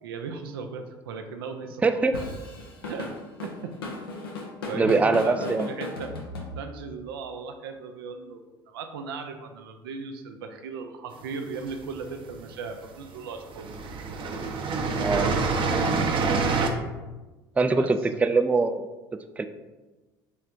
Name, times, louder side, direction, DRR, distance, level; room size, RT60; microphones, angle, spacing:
voice 1, 0.0-2.2 2.8-3.1 3.4-3.8 4.7-6.1 6.6-13.7 17.7-18.4, right 5 dB, 80° right, 6 dB, 0.5 m, -37 dB
voice 2, 1.8-2.1 4.8-5.7 15.0-15.3 17.6-18.8 19.4-19.5, right 3 dB, 10° right, 9 dB, 0.3 m, -22 dB
Drum kit / Drum, 2.1-7.0, left 3 dB, 90° left, 0.7 m, -36 dB
sound 1, 11.3-12.2 13.1-13.2 13.5-16.7, right 4 dB, 45° right, 0.7 m, -26 dB
3.6 x 3.2 x 4.4 m, 1.2 s
hypercardioid pair, 65°, 12 cm